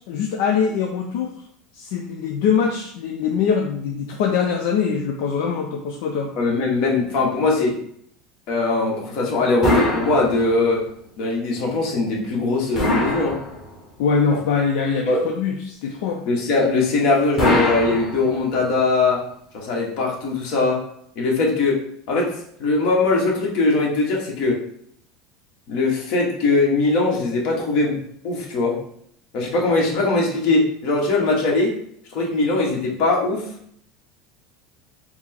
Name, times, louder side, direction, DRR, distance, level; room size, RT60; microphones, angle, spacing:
voice 1, 0.0-1.3 1.7-6.4 14.0-16.2, left 6 dB, 65° left, 0 dB, 0.5 m, -23 dB
voice 2, 6.4-7.8 8.5-10.8 11.2-13.4 15.1-15.2 16.2-19.2 19.5-20.8 21.1-21.8 22.1-24.6 25.7-28.8 29.3-31.7 32.1-33.5, left 3 dB, 50° left, -2 dB, 1.1 m, -21 dB
sound 1, 9.6-10.8 12.7-14.0 17.4-18.7, left 1 dB, 20° left, 1.3 m, -23 dB
4.4 x 2.0 x 4.2 m, 0.68 s
cardioid pair, 170°, 0 cm